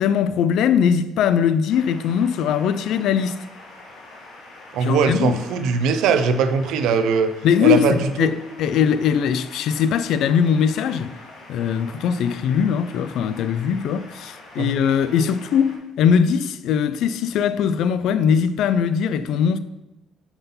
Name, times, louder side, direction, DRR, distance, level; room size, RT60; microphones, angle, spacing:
voice 1, 0.0-3.4 4.8-5.4 7.4-11.2 11.5-19.6, left 7 dB, 60° left, 0.3 m, -20 dB
sound 1, 1.7-15.8, left 2 dB, 85° left, 2.2 m, -44 dB
voice 2, 4.7-7.3 7.6-8.3 14.6-14.7, right 5 dB, 75° right, 0.6 m, -20 dB
5.8 x 5.5 x 5.5 m
cardioid pair, 175°, 0 cm